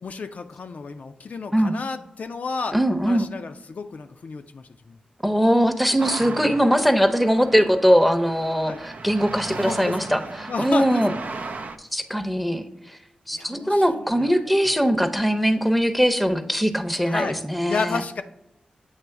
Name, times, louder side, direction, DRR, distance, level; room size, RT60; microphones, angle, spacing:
voice 1, 0.0-2.8 3.1-5.0 6.2-6.6 8.7-8.8 9.5-10.0 10.5-11.1 13.3-14.3 17.0-18.2, left 4 dB, 65° left, 7 dB, 0.4 m, -32 dB
voice 2, 2.7-3.3 5.2-11.1 11.9-13.0 13.3-18.0, equal, ahead, 9 dB, 0.7 m, -21 dB
sound 1, 6.0-11.8, right 3 dB, 75° right, 0.4 m, -36 dB
8.0 x 3.0 x 4.6 m, 0.87 s
cardioid pair, 55°, 3 cm